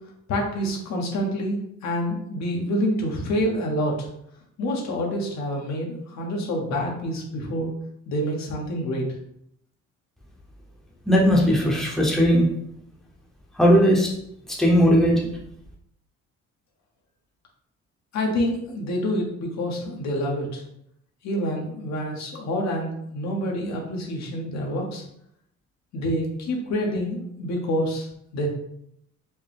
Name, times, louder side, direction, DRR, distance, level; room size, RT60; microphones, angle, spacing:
voice 1, 0.3-4.1 4.6-7.7 8.1-9.1 18.1-20.6 21.2-25.0 25.9-28.1 28.3-28.5, equal, 70° left, 0 dB, 1.0 m, -27 dB
voice 2, 11.1-12.5 13.6-14.1 14.5-15.3, equal, ahead, -3 dB, 0.8 m, -18 dB
4.4 x 2.2 x 3.4 m, 0.73 s
cardioid pair, 115°, 29 cm